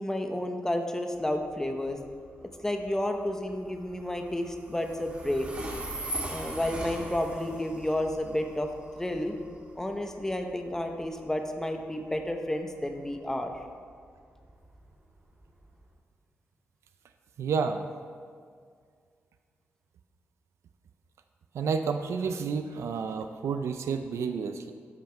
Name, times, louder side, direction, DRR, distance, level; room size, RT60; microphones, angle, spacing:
voice 1, 0.0-2.0 2.4-5.5 6.3-8.7 9.0-9.4 9.8-13.5, left 1 dB, 10° left, 4 dB, 0.7 m, -31 dB
Train, 1.1-15.9, right 1 dB, 30° right, 1.8 m, -42 dB
voice 2, 17.4-17.8 21.5-24.7, right 5 dB, 85° right, 7 dB, 0.4 m, -30 dB
13.0 x 5.7 x 4.4 m, 2.1 s
wide cardioid pair, 145°, 5 cm